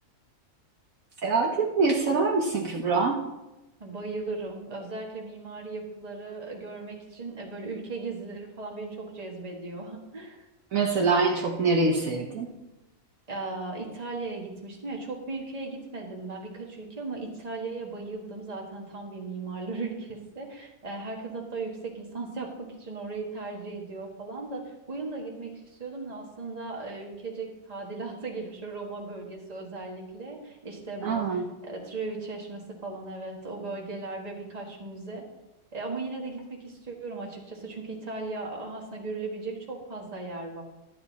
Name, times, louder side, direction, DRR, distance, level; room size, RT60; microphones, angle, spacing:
voice 1, 1.2-3.2 10.7-12.5 31.0-31.5, right 4 dB, 60° right, 0 dB, 1.5 m, -24 dB
voice 2, 3.8-10.5 13.3-35.2 35.7-40.6, right 3 dB, 25° right, -1 dB, 1.7 m, -37 dB
12.0 x 9.0 x 4.1 m, 0.98 s
omnidirectional pair, 1.7 m